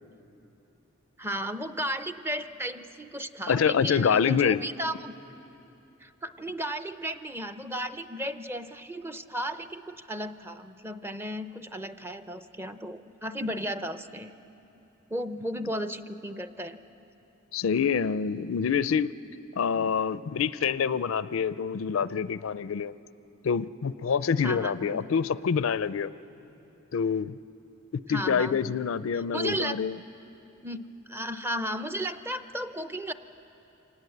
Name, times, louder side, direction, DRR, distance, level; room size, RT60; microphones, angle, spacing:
voice 1, 1.2-5.1 6.0-14.3 15.1-16.8 24.4-25.0 28.1-28.8 29.3-29.8 30.6-33.1, equal, 10° right, 10 dB, 0.5 m, -34 dB
voice 2, 3.5-4.6 17.5-19.1 19.5-22.9 23.4-26.1 26.9-27.4 28.1-30.0, left 6 dB, 75° left, 16 dB, 0.4 m, -26 dB
26.5 x 19.0 x 7.9 m, 2.9 s
head